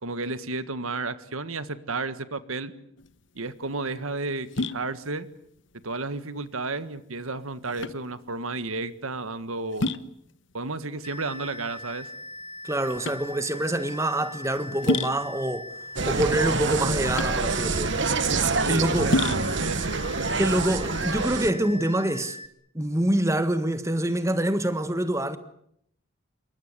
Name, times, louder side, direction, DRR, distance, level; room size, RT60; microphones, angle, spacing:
voice 1, 0.0-2.7 3.3-5.3 5.8-9.9 10.5-12.1 18.6-20.0, right 3 dB, 85° right, 1.7 m, -32 dB
sound 1, 3.0-21.5, left 2 dB, 60° left, 1.1 m, -34 dB
sound 2, 11.0-22.5, left 1 dB, 30° left, 1.6 m, -41 dB
voice 2, 12.6-15.7 16.1-18.0 18.6-19.1 20.4-22.4 22.7-25.4, right 1 dB, 15° right, 1.5 m, -26 dB
Insect, 16.0-21.5, right 4 dB, 55° right, 1.2 m, -26 dB
28.0 x 23.5 x 8.3 m
head